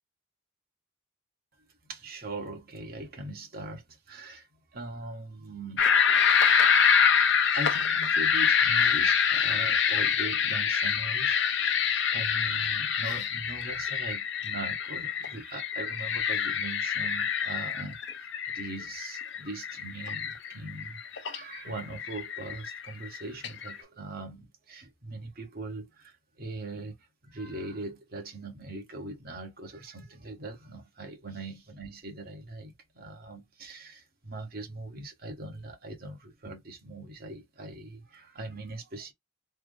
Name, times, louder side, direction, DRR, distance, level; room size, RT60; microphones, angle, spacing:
voice 1, 1.8-5.9 7.3-39.1, right 2 dB, 50° right, 1.2 m, -41 dB
sound 1, 5.8-23.8, left 7 dB, 60° left, 0.6 m, -26 dB
3.4 x 2.0 x 3.7 m
head